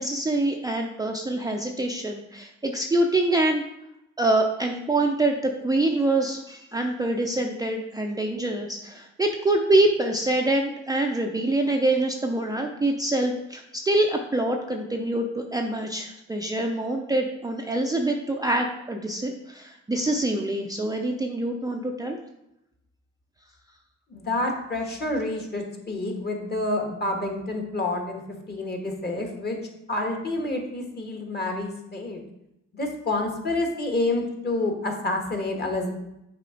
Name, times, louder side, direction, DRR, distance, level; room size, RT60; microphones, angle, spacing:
voice 1, 0.0-3.6 4.2-22.2, right 2 dB, 10° right, 1 dB, 0.5 m, -25 dB
voice 2, 24.1-28.2 28.5-29.6 29.9-32.2 32.7-35.9, left 2 dB, 35° left, 2 dB, 1.4 m, -28 dB
6.6 x 4.2 x 3.8 m, 0.86 s
cardioid pair, 90°, 30 cm